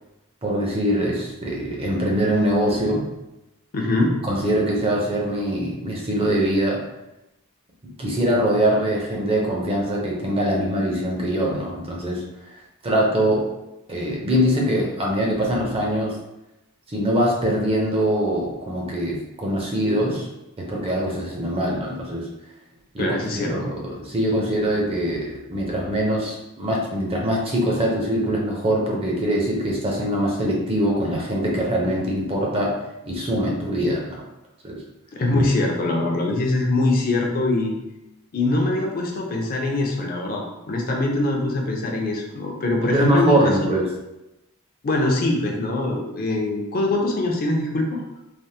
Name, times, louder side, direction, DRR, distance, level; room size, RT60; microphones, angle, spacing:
voice 1, 0.4-3.1 4.2-6.8 8.0-12.2 12.5-13.4 13.9-16.1 16.9-20.3 20.6-22.3 22.9-32.7 33.1-34.2 34.6-34.8 42.8-43.9, right 1 dB, 25° right, -2 dB, 0.5 m, -23 dB
voice 2, 3.7-4.1 23.0-23.7 35.2-37.7 38.3-43.6 44.8-48.0, left 2 dB, 40° left, 0 dB, 0.4 m, -23 dB
3.3 x 2.0 x 2.7 m, 0.93 s
head